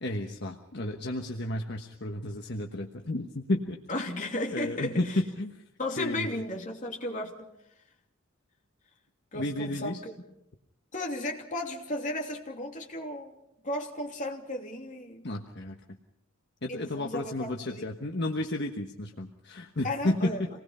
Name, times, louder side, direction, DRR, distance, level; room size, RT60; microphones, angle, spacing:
voice 1, 0.0-3.8 4.5-5.5 6.0-6.4 9.3-10.0 15.2-15.8 16.6-20.5, left 1 dB, 55° left, 3 dB, 1.3 m, -32 dB
voice 2, 3.9-5.2 5.8-7.5 9.3-10.1 10.9-13.4 13.6-15.3 16.7-17.9 19.8-20.4, left 1 dB, 40° left, 0 dB, 3.0 m, -35 dB
27.0 x 19.5 x 5.6 m, 0.82 s
head